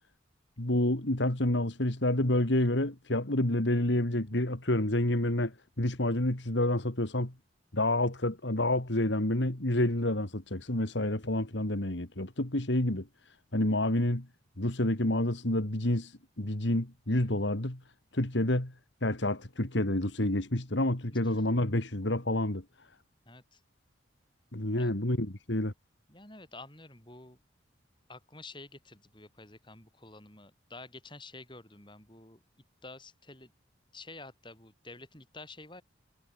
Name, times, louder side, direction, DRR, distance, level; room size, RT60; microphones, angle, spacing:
voice 1, 0.6-7.3 7.7-13.1 13.5-14.3 14.6-16.1 16.4-17.8 18.1-18.7 19.0-22.6 24.5-25.7, left 1 dB, 70° left, 2.5 m, -28 dB
voice 2, 21.1-21.4 23.3-23.6 24.8-24.9 26.1-27.4 28.1-32.4 32.8-33.5 33.9-35.8, left 2 dB, 25° left, 7.9 m, -49 dB
head